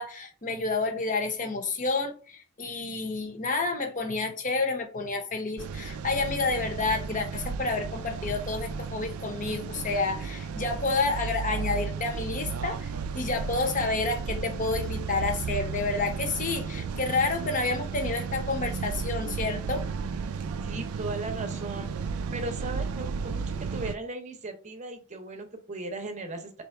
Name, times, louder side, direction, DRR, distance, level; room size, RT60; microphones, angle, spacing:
voice 1, 0.0-19.8, left 3 dB, 35° left, 0.8 m, -29 dB
sound 1, 5.6-24.0, right 5 dB, 75° right, 0.4 m, -34 dB
voice 2, 20.6-21.9 22.3-26.5, right 2 dB, 35° right, 0.8 m, -37 dB
3.4 x 2.9 x 4.4 m
head